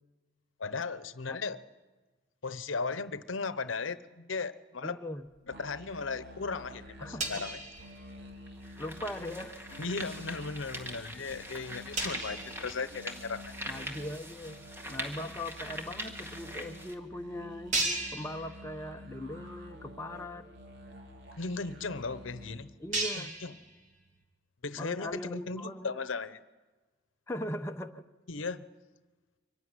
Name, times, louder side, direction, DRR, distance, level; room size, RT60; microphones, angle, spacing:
voice 1, 0.6-1.6 2.4-5.0 5.5-7.6 9.8-13.5 21.4-22.7 23.2-23.6 24.6-26.4 28.3-28.7, left 4 dB, 85° left, 14 dB, 0.9 m, -36 dB
voice 2, 4.8-5.2 7.0-7.4 8.8-9.8 13.7-14.6 14.9-20.5 22.8-23.3 24.8-26.0 27.3-28.0, left 1 dB, 15° left, 4 dB, 0.8 m, -40 dB
sound 1, 5.3-6.1 6.4-8.6 8.9-9.2 9.7-10.0 10.6-10.7 11.0-11.1 11.3-11.4 12.0-13.6 14.2-14.3 15.4-15.5 15.7-15.8 16.5-16.6 17.0-17.1 17.7-19.1 19.5-19.6 20.1-20.2 20.4-24.2, right 2 dB, 40° right, 3.0 m, -38 dB
sound 2, 5.5-22.6, equal, 60° right, 2.9 m, -50 dB
sound 3, 7.7-7.8 8.5-16.9, equal, 10° right, 1.6 m, -43 dB
24.0 x 15.0 x 9.7 m, 1.3 s
head